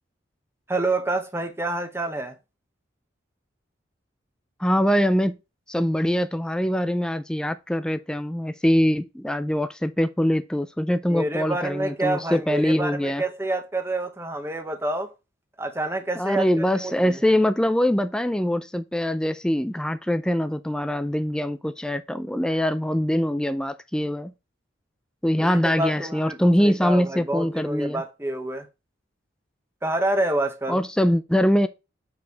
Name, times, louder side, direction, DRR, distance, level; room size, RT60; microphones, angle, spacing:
voice 1, 0.7-2.4 11.1-15.1 15.6-17.2 25.4-28.7 29.8-30.8, right 2 dB, 15° right, 0.8 m, -28 dB
voice 2, 4.6-5.3 5.7-13.2 16.2-24.3 25.2-28.0 30.7-31.7, equal, 5° left, 0.3 m, -23 dB
6.7 x 4.8 x 3.4 m
head